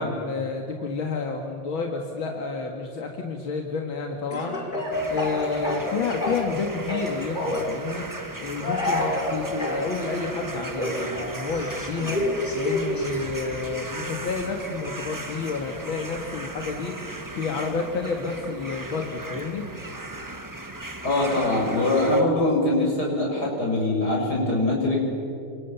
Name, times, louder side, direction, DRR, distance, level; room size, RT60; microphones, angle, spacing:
voice 1, 0.0-19.6, left 4 dB, 85° left, 2 dB, 2.6 m, -30 dB
Speech / Cough, 4.3-6.6 6.9-7.7 8.6-9.8 10.7-13.1, left 1 dB, 25° left, 4.9 m, -28 dB
sound 1, 4.9-22.2, right 2 dB, 15° right, 0.9 m, -37 dB
voice 2, 21.0-25.0, left 2 dB, 50° left, -2 dB, 7.5 m, -23 dB
29.5 x 26.5 x 7.2 m, 2.7 s
omnidirectional pair, 2.1 m